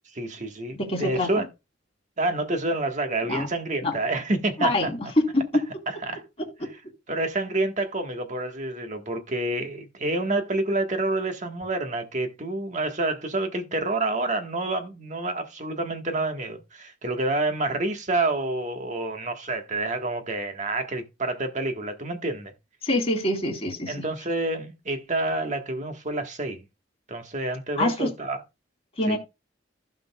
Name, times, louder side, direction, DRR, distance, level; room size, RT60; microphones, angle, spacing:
voice 1, 0.1-1.5 2.2-4.9 6.1-6.2 7.1-22.5 23.9-26.6 27.1-28.4 29.1-29.2, right 2 dB, 40° right, 1.4 m, -28 dB
voice 2, 0.7-1.4 3.3-3.5 3.8-3.9 4.6-5.2 22.8-23.9 27.8-28.1 29.0-29.2, left 1 dB, 35° left, 3.1 m, -25 dB
15.5 x 5.3 x 2.3 m
head